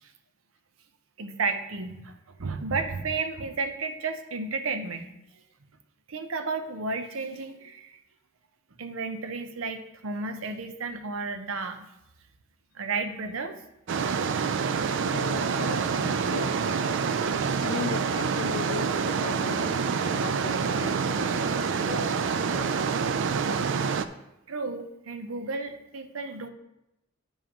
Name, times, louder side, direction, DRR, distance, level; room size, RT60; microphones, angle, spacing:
voice 1, 1.2-5.1 6.1-8.0 8.8-11.9 12.7-13.6 24.5-26.5, right 4 dB, 85° right, 8 dB, 0.7 m, -32 dB
sound 1, 13.9-24.1, right 5 dB, 65° right, 0.4 m, -27 dB
voice 2, 15.0-16.9 17.6-22.7, left 6 dB, 75° left, 13 dB, 0.4 m, -38 dB
8.8 x 7.2 x 2.9 m, 0.89 s
head